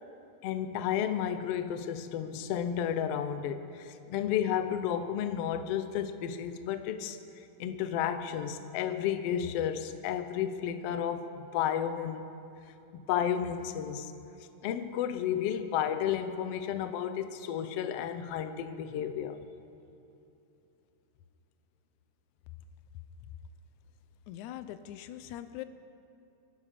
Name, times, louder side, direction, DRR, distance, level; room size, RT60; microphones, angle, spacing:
voice 1, 0.4-7.2 7.6-12.3 12.9-14.1 14.6-19.4, left 9 dB, 70° left, 9 dB, 1.6 m, -32 dB
voice 2, 24.3-25.6, left 12 dB, 90° left, 12 dB, 2.1 m, -42 dB
25.5 x 10.5 x 5.1 m, 2.8 s
omnidirectional pair, 3.3 m